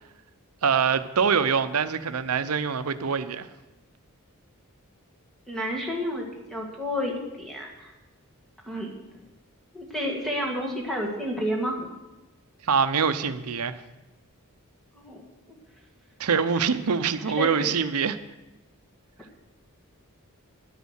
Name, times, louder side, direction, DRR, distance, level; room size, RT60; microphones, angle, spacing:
voice 1, 0.6-3.5 12.6-13.7 16.2-18.2, right 6 dB, 85° right, 12 dB, 0.7 m, -24 dB
voice 2, 5.5-7.9 8.7-8.9 9.7-11.9 14.9-15.2 17.2-17.8, equal, ahead, -2 dB, 2.0 m, -30 dB
11.0 x 8.3 x 6.4 m, 1.0 s
head